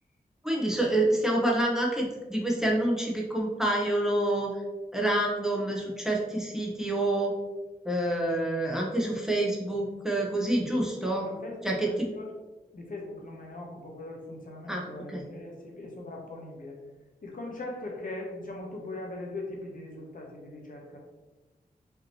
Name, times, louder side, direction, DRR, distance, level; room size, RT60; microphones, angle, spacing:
voice 1, 0.4-4.5 4.9-7.3 7.8-11.3 11.6-11.9 14.7-14.8 15.1-15.2, right 1 dB, 5° right, -2 dB, 0.9 m, -27 dB
voice 2, 11.2-12.3 12.7-16.8 17.2-21.0, left 2 dB, 60° left, -1 dB, 1.1 m, -40 dB
4.9 x 2.9 x 3.0 m, 1.2 s
wide cardioid pair, 70°, 16 cm